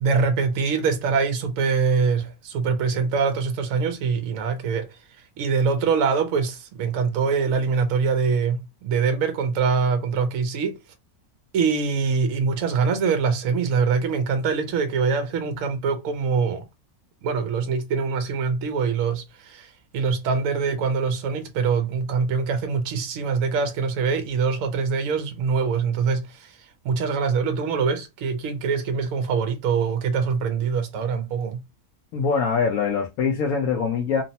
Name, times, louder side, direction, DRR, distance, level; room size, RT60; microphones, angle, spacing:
voice 1, 0.0-4.9 5.4-10.8 11.5-16.6 17.2-26.5 26.8-31.6, right 5 dB, 70° right, 0.9 m, -24 dB
voice 2, 32.1-34.2, left 5 dB, 70° left, 0.9 m, -23 dB
3.0 x 2.0 x 2.7 m
omnidirectional pair, 1.6 m